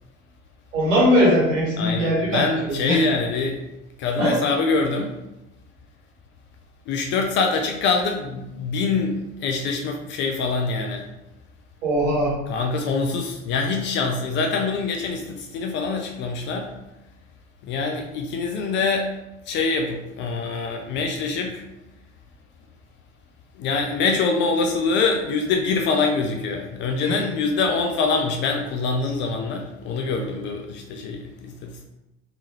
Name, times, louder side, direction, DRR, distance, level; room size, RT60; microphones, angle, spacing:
voice 1, 0.7-3.1 4.2-4.4 11.8-12.3 27.0-27.2 29.0-29.1, equal, 70° right, -4 dB, 1.5 m, -20 dB
voice 2, 1.8-3.6 4.0-5.1 6.9-11.1 12.5-16.7 17.6-19.1 19.5-21.6 23.6-31.8, left 4 dB, 30° left, 3 dB, 0.4 m, -24 dB
3.4 x 2.9 x 3.0 m, 0.95 s
figure-of-eight pair, 75°, 40 cm